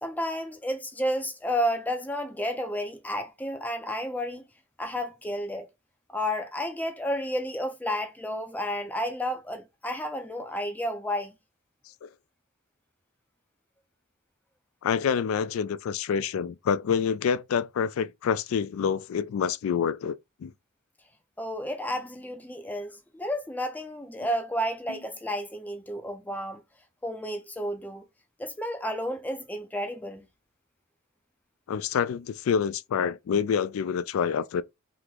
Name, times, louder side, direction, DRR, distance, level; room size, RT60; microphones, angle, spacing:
voice 1, 0.0-4.5 4.8-5.7 6.1-11.3 21.4-26.6 27.0-28.0 28.4-30.3, equal, 10° left, 0.4 m, -31 dB
voice 2, 14.8-20.5 24.9-25.0 31.7-34.6, left 7 dB, 75° left, 0.3 m, -27 dB
3.0 x 2.1 x 3.6 m
head